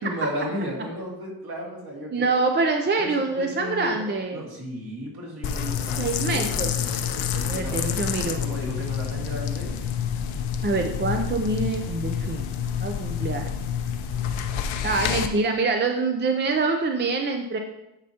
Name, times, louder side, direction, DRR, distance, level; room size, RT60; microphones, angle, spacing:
voice 1, 0.0-2.3 3.0-4.1 4.3-6.7 7.3-7.8 8.2-9.8, equal, 50° right, -2 dB, 2.3 m, -34 dB
voice 2, 2.1-4.5 6.0-6.7 7.4-8.4 10.6-12.5 12.8-13.4 14.8-17.6, right 3 dB, 25° right, 4 dB, 0.5 m, -25 dB
sound 1, 5.4-15.3, left 8 dB, 90° left, 0.7 m, -28 dB
9.7 x 5.4 x 2.9 m, 0.91 s
cardioid pair, 125°, 46 cm